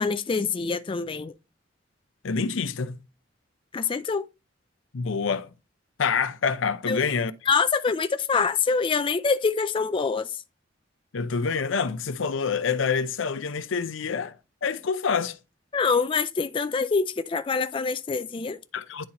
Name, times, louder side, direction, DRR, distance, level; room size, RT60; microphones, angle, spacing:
voice 1, 0.0-1.3 3.7-4.3 6.9-7.0 7.5-10.4 15.7-18.6, left 5 dB, 25° left, 0.3 m, -25 dB
voice 2, 2.2-3.0 4.9-5.5 6.0-7.3 11.1-14.4 14.6-15.4 18.7-19.1, left 5 dB, 80° left, 0.6 m, -27 dB
9.9 x 4.1 x 2.9 m
head